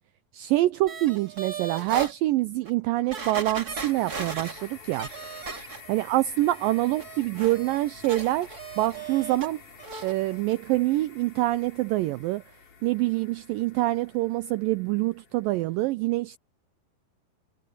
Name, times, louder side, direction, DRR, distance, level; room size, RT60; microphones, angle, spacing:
voice 1, 0.3-5.1 5.9-8.5 8.8-9.6 10.0-12.4 12.8-16.4, right 17 dB, 85° right, 1.9 m, -25 dB
sound 1, 0.9-2.1 2.7-2.8 3.1-6.1 6.4-9.5 9.8-10.1 10.5-10.6, right 5 dB, 30° right, 2.4 m, -37 dB
sound 2, 3.9-15.8, left 5 dB, 55° left, 5.7 m, -49 dB
omnidirectional pair, 4.7 m